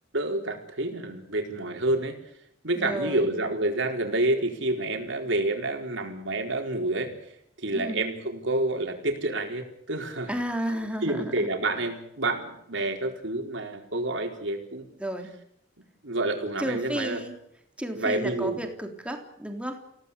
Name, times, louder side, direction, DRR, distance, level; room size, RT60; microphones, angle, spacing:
voice 1, 0.1-2.2 2.6-7.1 7.6-10.3 11.0-14.8 16.0-17.2 17.9-18.6, right 2 dB, 70° right, 4 dB, 4.5 m, -28 dB
voice 2, 2.8-3.3 7.7-8.0 10.3-11.5 15.0-15.3 16.6-17.3 17.8-19.8, equal, 5° right, 4 dB, 3.6 m, -32 dB
28.5 x 17.5 x 8.3 m, 0.74 s
head